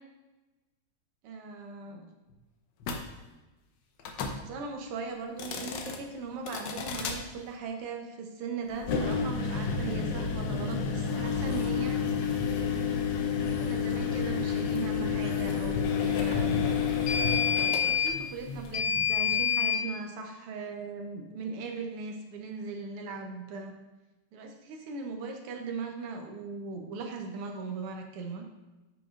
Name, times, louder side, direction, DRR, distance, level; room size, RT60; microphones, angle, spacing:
voice 1, 1.2-2.1 4.3-12.0 13.4-16.9 17.8-23.7 24.3-28.5, right 4 dB, 90° right, 3 dB, 1.8 m, -39 dB
sound 1, 2.8-3.0 4.0-4.4 5.3-6.0 6.5-7.2 8.8-19.8, left 6 dB, 70° left, 1.2 m, -29 dB
9.5 x 5.1 x 2.5 m, 1.1 s
omnidirectional pair, 2.4 m